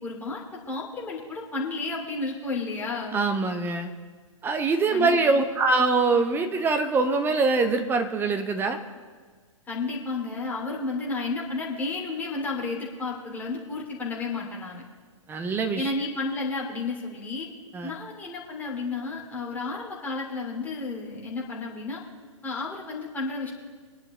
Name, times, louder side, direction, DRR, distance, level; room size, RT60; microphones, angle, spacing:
voice 1, 0.0-3.2 4.9-5.4 9.7-14.8 15.8-17.5 17.8-22.0 22.4-23.5, left 3 dB, 10° left, -3 dB, 2.5 m, -32 dB
voice 2, 3.1-3.9 4.4-8.8 15.3-15.9 17.7-17.9, right 3 dB, 10° right, 6 dB, 0.9 m, -23 dB
23.0 x 11.0 x 3.0 m, 1.5 s
figure-of-eight pair, 115°, 17 cm